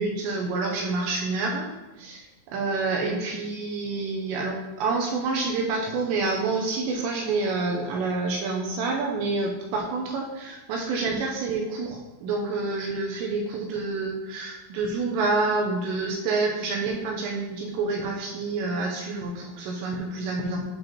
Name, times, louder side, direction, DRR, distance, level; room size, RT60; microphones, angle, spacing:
voice 1, 0.0-1.7 2.0-20.7, right 3 dB, 80° right, 0 dB, 2.7 m, -28 dB
12.5 x 4.5 x 3.0 m, 1.1 s
omnidirectional pair, 5.7 m